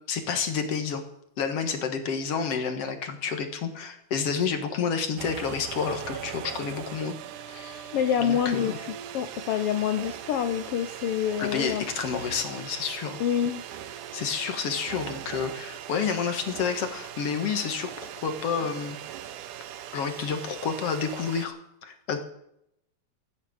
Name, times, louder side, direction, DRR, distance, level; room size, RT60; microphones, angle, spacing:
voice 1, 0.1-1.0 1.4-7.2 7.5-7.9 8.2-8.8 11.4-13.2 14.1-17.9 18.2-19.0 19.9-22.2, left 6 dB, 55° left, 7 dB, 2.2 m, -29 dB
sound 1, 5.2-21.5, right 10 dB, 85° right, 2.5 m, -40 dB
voice 2, 7.9-11.8 13.2-13.6, left 9 dB, 75° left, 9 dB, 1.4 m, -27 dB
14.0 x 9.3 x 8.6 m, 0.77 s
omnidirectional pair, 3.5 m